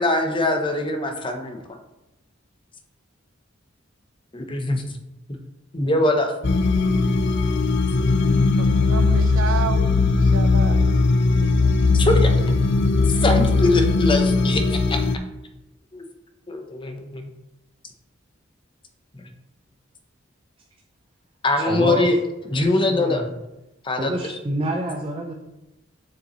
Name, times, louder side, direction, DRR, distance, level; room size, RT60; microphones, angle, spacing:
voice 1, 0.0-1.6 4.3-4.8 5.7-6.3 11.9-12.3 13.0-15.0 15.9-16.0 16.5-17.3 21.4-22.2 22.5-23.2 23.8-24.1, left 2 dB, 25° left, 0.8 m, -22 dB
sound 1, 6.4-15.2, left 3 dB, 55° left, 0.5 m, -19 dB
voice 2, 8.6-11.0 11.3-12.0, right 5 dB, 90° right, 0.6 m, -32 dB
voice 3, 21.6-22.1 22.6-23.3 24.0-25.3, right 1 dB, 25° right, 0.6 m, -27 dB
6.9 x 6.7 x 3.0 m
head